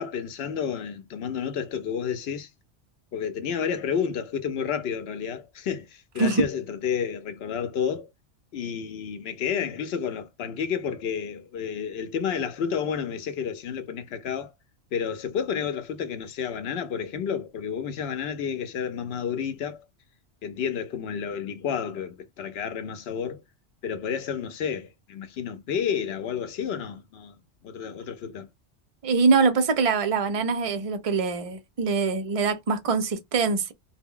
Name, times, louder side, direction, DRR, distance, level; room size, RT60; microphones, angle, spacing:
voice 1, 0.0-2.5 3.1-8.1 8.5-14.5 14.9-19.8 20.4-23.4 23.8-27.4 27.6-28.5, left 7 dB, 65° left, 0.7 m, -30 dB
voice 2, 29.0-33.7, right 4 dB, 50° right, 0.4 m, -23 dB
2.1 x 2.1 x 3.6 m
omnidirectional pair, 1.2 m